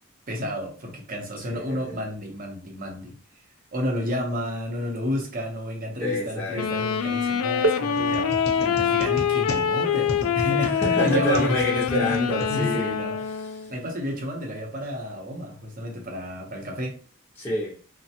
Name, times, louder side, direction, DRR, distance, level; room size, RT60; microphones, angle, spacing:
voice 1, 0.3-3.2 3.7-11.6 12.5-13.2 13.7-17.0, equal, 40° right, 1 dB, 0.8 m, -31 dB
voice 2, 1.5-2.0 6.0-6.8 10.6-12.9 17.4-17.7, left 1 dB, 10° left, -6 dB, 0.6 m, -27 dB
Wind instrument woodwind instrument, 6.5-13.7, left 7 dB, 85° left, 0.3 m, -25 dB
sound 1, 7.6-13.1 14.1-14.2 15.1-15.3, right 4 dB, 60° right, 0.3 m, -34 dB
sound 2, 7.9-13.1, left 1 dB, 50° left, 0.6 m, -35 dB
3.2 x 2.1 x 2.8 m, 0.41 s
head